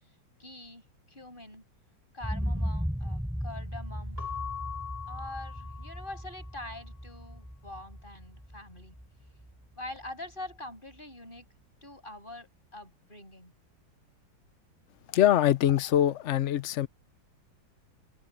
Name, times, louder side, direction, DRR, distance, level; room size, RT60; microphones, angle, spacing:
voice 1, 0.4-1.6 2.1-4.2 5.1-8.9 9.7-11.5 11.8-13.5, left 1 dB, 25° left, 8.2 m, -44 dB
sound 1, 2.2-10.1 10.5-10.6, equal, ahead, 6.0 m, -36 dB
Keyboard (musical) / Bell, 4.2-6.6, left 8 dB, 30° right, 3.8 m, -41 dB
voice 2, 15.1-16.9, left 11 dB, 70° left, 0.6 m, -23 dB
omnidirectional pair, 2.1 m